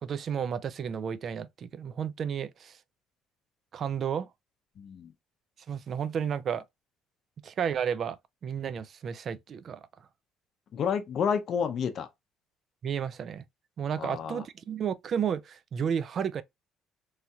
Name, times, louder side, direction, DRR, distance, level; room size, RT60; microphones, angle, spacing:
voice 1, 0.0-2.8 3.7-4.3 5.7-6.6 7.4-9.9 12.8-13.4 13.8-16.4, right 7 dB, 50° right, 0.3 m, -32 dB
voice 2, 4.8-5.1 10.7-12.1 14.0-14.4, left 7 dB, 55° left, 0.5 m, -30 dB
3.1 x 2.7 x 2.3 m
cardioid pair, 90°, 0 cm